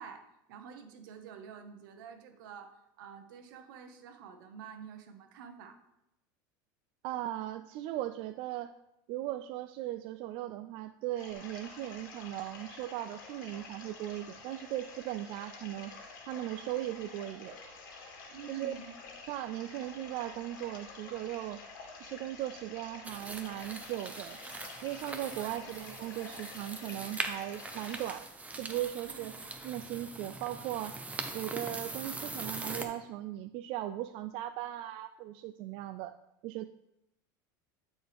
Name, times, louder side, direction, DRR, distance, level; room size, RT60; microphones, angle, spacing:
voice 1, 0.0-5.8 18.3-18.9 25.2-25.6 29.1-29.3, right 7 dB, 75° right, 6 dB, 1.1 m, -48 dB
voice 2, 7.0-8.7 9.1-15.9 16.3-17.6 18.5-18.7 19.3-21.6 21.9-24.4 24.8-28.3 28.6-29.3 29.6-31.0 31.3-36.1 36.4-36.6, right 14 dB, 55° right, 10 dB, 0.4 m, -38 dB
sound 1, 11.2-28.2, left 4 dB, 85° left, 1.9 m, -49 dB
sound 2, 23.0-32.8, right 3 dB, 15° right, 0.9 m, -42 dB
11.5 x 4.4 x 3.5 m, 0.85 s
supercardioid pair, 110°, 11 cm